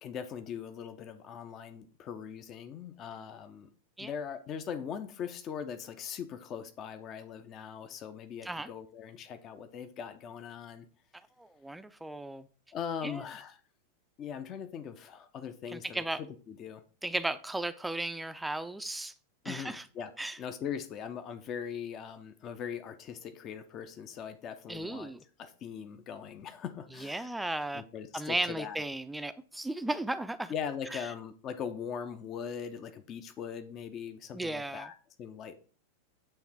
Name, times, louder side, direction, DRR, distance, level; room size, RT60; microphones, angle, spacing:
voice 1, 0.0-3.7 4.0-10.9 12.7-13.6 14.2-16.8 19.4-20.1 20.4-25.1 25.4-27.3 27.7-28.8 30.5-34.9 35.2-35.6, left 7 dB, 30° left, 0.6 m, -40 dB
voice 2, 11.4-12.5 13.0-13.2 15.7-16.2 17.0-19.1 19.4-19.9 20.2-20.4 24.7-25.2 27.0-27.8 28.1-30.5 30.9-31.0 34.3-34.9, right 2 dB, 5° right, 0.5 m, -35 dB
8.5 x 3.3 x 4.5 m
figure-of-eight pair, 90°, 0 cm